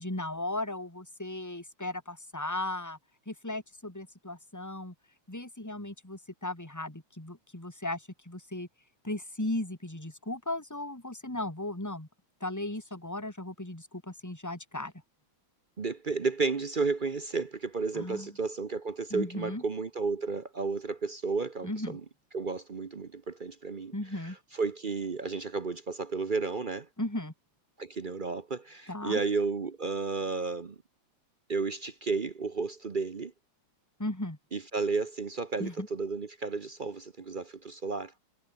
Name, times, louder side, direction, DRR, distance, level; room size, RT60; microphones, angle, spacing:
voice 1, 0.0-3.0 3.3-4.9 5.3-8.7 9.0-12.1 12.4-14.9 17.9-18.3 19.1-19.6 21.6-22.0 23.9-24.4 27.0-27.3 28.9-29.2 34.0-34.4 35.6-35.9, left 1 dB, 10° left, 3.8 m, -36 dB
voice 2, 15.8-22.0 22.3-23.9 24.6-26.9 27.8-30.8 31.5-33.3 34.5-38.1, right 4 dB, 45° right, 0.6 m, -32 dB
omnidirectional pair, 2.2 m